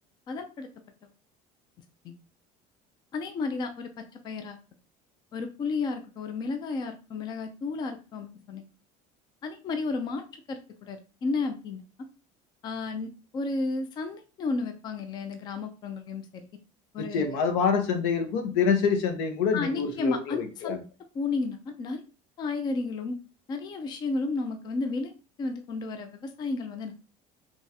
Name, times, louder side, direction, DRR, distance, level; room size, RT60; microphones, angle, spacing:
voice 1, 0.3-0.7 2.0-2.2 3.1-4.6 5.3-8.7 9.4-11.8 12.6-16.5 16.9-17.4 19.5-20.8 21.1-22.0 22.4-23.2 23.5-25.1 25.4-26.9, left 3 dB, 25° left, 7 dB, 0.4 m, -32 dB
voice 2, 17.0-20.8, left 6 dB, 85° left, 5 dB, 0.9 m, -26 dB
3.5 x 3.0 x 2.8 m, 0.33 s
cardioid pair, 165°, 16 cm